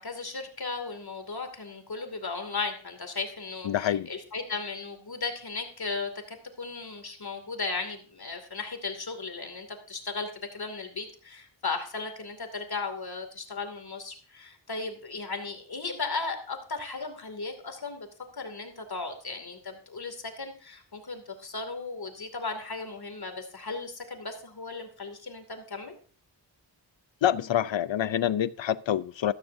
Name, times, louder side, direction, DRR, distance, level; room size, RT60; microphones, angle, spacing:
voice 1, 0.0-18.1 18.3-25.9, left 4 dB, 55° left, 2.7 m, -36 dB
voice 2, 3.6-4.1 27.2-29.3, left 10 dB, 80° left, 0.6 m, -26 dB
13.5 x 13.0 x 2.7 m
wide cardioid pair, 70°, 44 cm